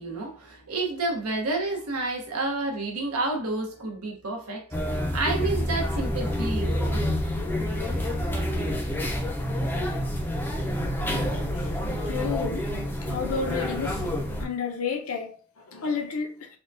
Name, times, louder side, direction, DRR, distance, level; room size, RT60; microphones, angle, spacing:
voice 1, 0.0-4.7 4.9-7.0 9.6-10.0, right 2 dB, 75° right, 0.9 m, -30 dB
sound 1, 4.7-14.4, equal, 10° left, 0.5 m, -28 dB
voice 2, 12.1-12.7 13.1-14.0 14.4-16.5, left 5 dB, 70° left, 0.7 m, -31 dB
3.6 x 2.3 x 2.5 m
head